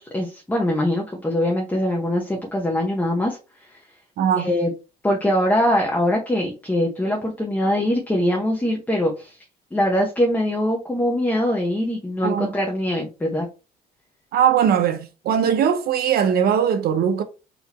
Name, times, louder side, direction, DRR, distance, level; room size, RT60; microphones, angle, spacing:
voice 1, 0.0-3.4 3.7-3.8 4.4-4.7 5.0-9.4 9.7-13.5, left 1 dB, 10° left, 1.0 m, -22 dB
voice 2, 4.2-4.5 12.2-12.5 14.3-17.2, right 8 dB, 65° right, 0.7 m, -20 dB
4.1 x 2.8 x 4.1 m
cardioid pair, 110°, 17 cm